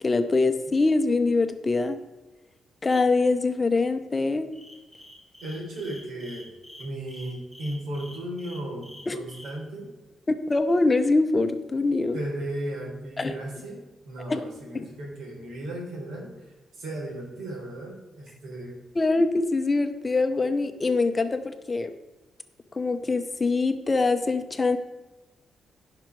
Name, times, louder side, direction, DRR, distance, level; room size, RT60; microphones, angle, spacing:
voice 1, 0.0-2.0 2.8-4.5 9.1-9.2 10.3-12.2 13.2-13.3 14.3-14.4 14.7-14.8 19.0-21.9 22.7-24.8, left 3 dB, 20° left, 8 dB, 0.7 m, -24 dB
sound 1, 4.5-9.5, equal, 5° right, 3.2 m, -46 dB
voice 2, 5.4-6.5 6.8-9.9 12.1-16.3 16.7-18.8, right 1 dB, 85° right, -1 dB, 3.9 m, -35 dB
15.5 x 5.9 x 4.7 m, 1.1 s
cardioid pair, 140°, 0 cm